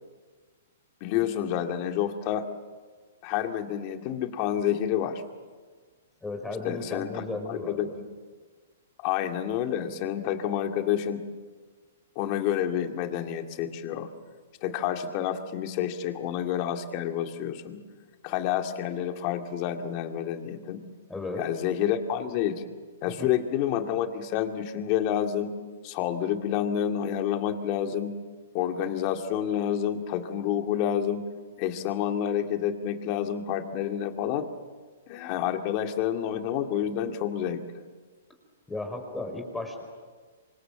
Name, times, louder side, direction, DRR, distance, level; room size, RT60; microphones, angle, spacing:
voice 1, 1.0-2.4 3.2-5.2 6.6-8.0 9.0-11.2 12.2-14.1 14.6-17.8 18.2-20.8 21.4-22.6 23.0-25.5 25.8-28.1 28.5-31.2 31.6-34.5 35.1-37.6, left 10 dB, 40° left, 5 dB, 2.2 m, -29 dB
voice 2, 6.2-7.9 21.1-21.5 23.2-23.3 38.7-39.8, left 2 dB, 5° left, 4 dB, 5.0 m, -35 dB
27.0 x 25.0 x 7.6 m, 1.5 s
hypercardioid pair, 140°, 0 cm